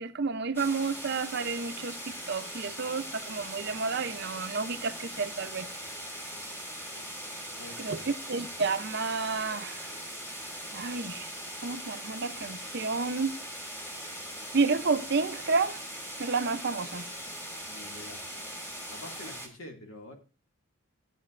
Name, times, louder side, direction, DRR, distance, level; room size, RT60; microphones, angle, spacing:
voice 1, 0.0-5.7 7.8-9.9 10.7-11.3 11.6-13.3 14.5-15.8 16.2-17.1, right 4 dB, 50° right, 0.6 m, -30 dB
sound 1, 0.5-19.5, equal, 10° left, 2.0 m, -40 dB
voice 2, 7.6-8.1 17.7-18.3 18.9-20.1, left 1 dB, 70° left, 2.2 m, -46 dB
14.0 x 8.2 x 2.5 m
head